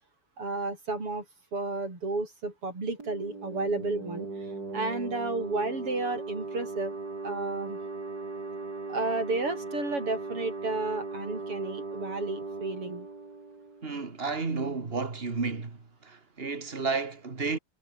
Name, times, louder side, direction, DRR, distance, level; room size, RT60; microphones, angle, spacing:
voice 1, 0.4-1.2 1.5-4.3 4.7-6.9 7.2-7.8 8.9-13.1, right 3 dB, 90° right, 8.1 m, -32 dB
sound 1, 3.0-14.4, right 3 dB, 45° right, 4.7 m, -38 dB
voice 2, 13.8-15.8 16.0-17.6, right 4 dB, 25° right, 2.3 m, -32 dB
omnidirectional pair, 2.4 m